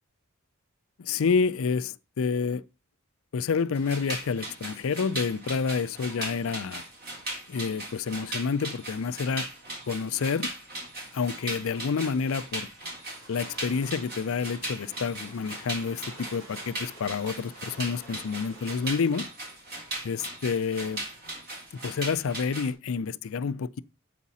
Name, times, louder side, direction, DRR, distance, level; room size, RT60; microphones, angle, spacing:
voice 1, 1.0-2.6 3.3-6.8 7.5-9.5 9.9-10.5 11.1-12.7 13.3-19.3 20.0-21.0 21.7-23.8, left 5 dB, 70° left, 0.5 m, -29 dB
sound 1, 3.7-22.7, right 2 dB, 45° right, 3.4 m, -38 dB
sound 2, 12.8-19.3, right 1 dB, 65° right, 4.0 m, -50 dB
8.2 x 5.1 x 4.1 m
head